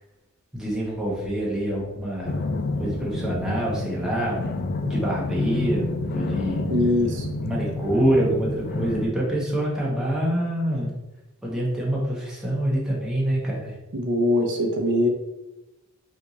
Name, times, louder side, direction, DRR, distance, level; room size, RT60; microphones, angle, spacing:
voice 1, 0.5-2.4 2.8-5.8 6.1-6.6 7.4-10.9 11.4-13.7, right 1 dB, 5° right, -6 dB, 0.9 m, -26 dB
sound 1, 2.2-9.1, left 2 dB, 45° left, 0.4 m, -29 dB
voice 2, 6.7-7.3 13.9-15.1, left 1 dB, 55° right, 3 dB, 0.8 m, -22 dB
4.4 x 2.6 x 4.0 m, 0.97 s
head